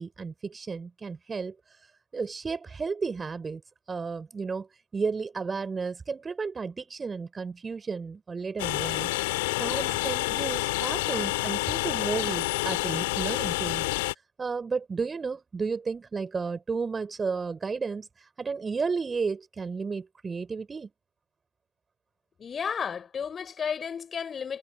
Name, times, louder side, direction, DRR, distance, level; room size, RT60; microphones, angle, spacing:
voice 1, 0.0-1.6 2.1-3.6 3.9-4.7 4.9-9.1 9.6-13.8 14.4-20.9, right 5 dB, 15° right, 4.4 m, -33 dB
Train, 8.6-14.1, left 23 dB, 55° left, 4.9 m, -28 dB
voice 2, 22.4-24.6, left 7 dB, 25° left, 3.8 m, -33 dB
figure-of-eight pair, 85°, 0 cm